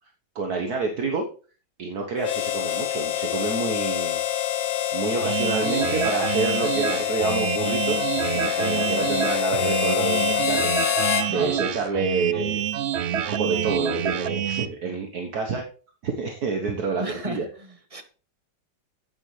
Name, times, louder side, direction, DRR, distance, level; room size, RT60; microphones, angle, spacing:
voice 1, 0.3-1.3 1.8-4.2 4.9-11.0 11.3-12.6 13.1-15.6 16.0-17.5, right 4 dB, 60° right, 1.7 m, -28 dB
Harmonica, 2.2-11.3, left 11 dB, 65° left, 1.6 m, -26 dB
sound 1, 5.2-14.7, right 10 dB, 85° right, 0.5 m, -27 dB
voice 2, 11.3-11.6 17.0-18.0, right 2 dB, 20° right, 1.2 m, -34 dB
11.5 x 8.9 x 3.3 m
omnidirectional pair, 1.9 m